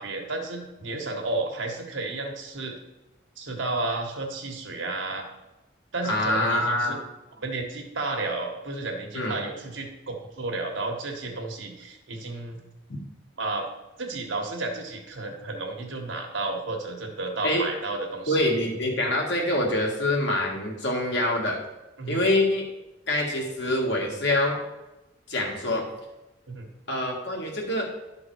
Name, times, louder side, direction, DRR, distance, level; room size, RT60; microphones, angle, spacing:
voice 1, 0.0-2.7 3.4-5.3 5.9-7.0 7.4-12.6 13.4-13.7 14.0-18.5 22.0-22.2 26.5-26.7, right 2 dB, 90° right, 1 dB, 1.4 m, -32 dB
voice 2, 6.0-7.0 9.1-9.4 17.4-17.7 18.3-21.6 22.1-22.7 23.1-24.6 25.3-25.9 26.9-27.9, left 1 dB, 65° left, -1 dB, 1.7 m, -25 dB
11.5 x 3.9 x 4.6 m, 1.0 s
head